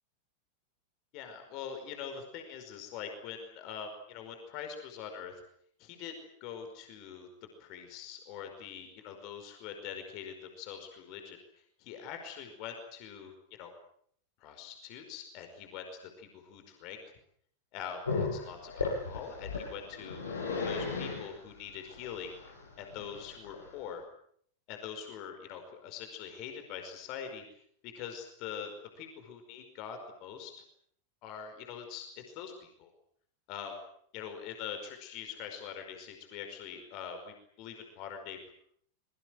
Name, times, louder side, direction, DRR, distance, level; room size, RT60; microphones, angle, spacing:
voice 1, 1.1-5.4 5.8-7.3 7.6-11.4 11.8-13.7 14.4-15.8 16.2-17.1 17.7-20.2 20.6-22.3 22.8-24.0 24.7-27.4 27.8-30.6 31.2-32.9 33.5-33.8 34.1-38.5, left 7 dB, 40° left, 5 dB, 5.1 m, -43 dB
Growling, 18.0-23.9, left 4 dB, 70° left, 7.3 m, -36 dB
25.5 x 23.0 x 7.8 m, 0.64 s
figure-of-eight pair, 90°, 0 cm